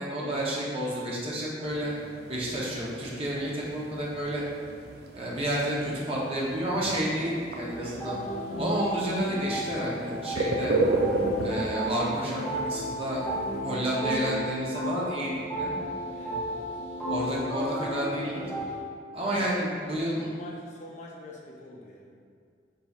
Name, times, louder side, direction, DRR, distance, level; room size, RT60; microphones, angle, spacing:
voice 1, 0.0-1.9 2.3-4.4 5.1-8.2 8.6-10.7 11.4-13.2 13.6-15.7 17.1-18.4 19.1-20.3, right 1 dB, 30° right, -5 dB, 0.7 m, -30 dB
sound 1, 1.6-13.6, right 2 dB, 55° right, 0.4 m, -34 dB
sound 2, 7.7-18.8, equal, 10° left, 0.7 m, -33 dB
voice 2, 16.1-16.7 19.2-19.6 20.2-22.1, left 2 dB, 40° left, -2 dB, 0.4 m, -45 dB
4.7 x 4.0 x 2.3 m, 2.2 s
head